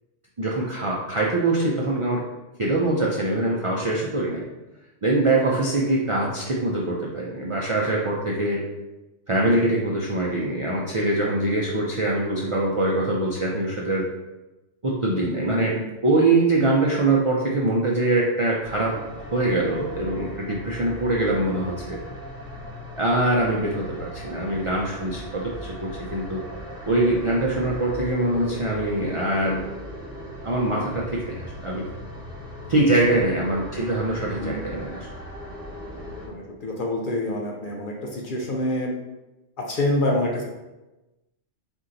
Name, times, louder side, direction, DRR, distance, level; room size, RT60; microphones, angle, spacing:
voice 1, 0.4-2.2 2.6-4.5 5.0-8.6 9.3-14.1 14.8-15.7 16.0-18.9 19.3-22.0 23.0-26.4 26.9-29.6 30.4-31.8 32.7-35.1, right 2 dB, 45° right, -4 dB, 0.4 m, -23 dB
voice 2, 15.4-15.8 33.1-33.2 34.4-34.6 36.3-38.9 39.6-40.4, left 1 dB, 55° left, 0 dB, 0.6 m, -26 dB
sound 1, 18.6-36.3, equal, 5° right, 0.8 m, -38 dB
4.4 x 2.7 x 3.8 m, 1.0 s
omnidirectional pair, 1.3 m